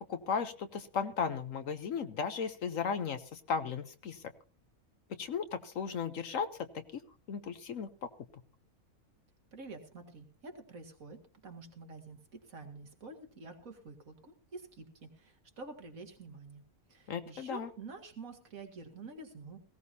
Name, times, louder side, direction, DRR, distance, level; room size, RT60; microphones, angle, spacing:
voice 1, 0.1-4.2 5.1-7.0 7.3-7.9 17.1-17.7, left 6 dB, 65° left, 10 dB, 1.2 m, -36 dB
voice 2, 9.5-16.6 16.9-19.6, right 3 dB, 65° right, 5 dB, 2.4 m, -48 dB
19.0 x 16.5 x 2.7 m, 0.35 s
omnidirectional pair, 1.5 m